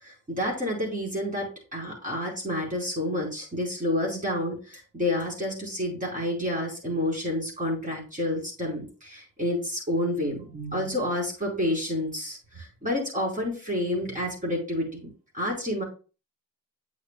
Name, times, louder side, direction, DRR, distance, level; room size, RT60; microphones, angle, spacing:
voice 1, 0.0-15.0 15.3-15.8, left 1 dB, 25° right, -2 dB, 4.5 m, -29 dB
8.6 x 6.8 x 2.3 m, 0.33 s
cardioid pair, 90°, 30 cm